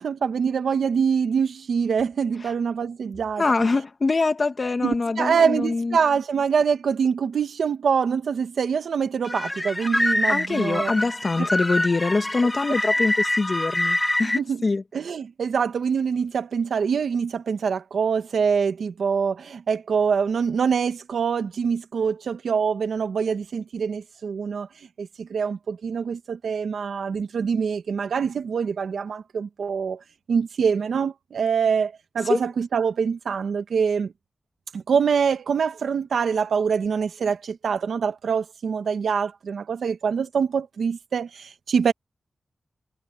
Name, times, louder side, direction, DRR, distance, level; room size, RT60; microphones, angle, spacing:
voice 1, 0.0-3.7 4.8-10.9 11.4-11.5 14.2-14.6 14.9-24.7 25.0-30.0 30.3-34.1 34.7-41.9, right 6 dB, 90° right, 1.4 m, -24 dB
voice 2, 3.4-6.0 10.3-14.8 32.3-32.4, left 3 dB, 40° left, 1.9 m, -24 dB
sound 1, 9.2-14.4, left 1 dB, 15° left, 1.6 m, -25 dB
wide cardioid pair, 100°, 0 cm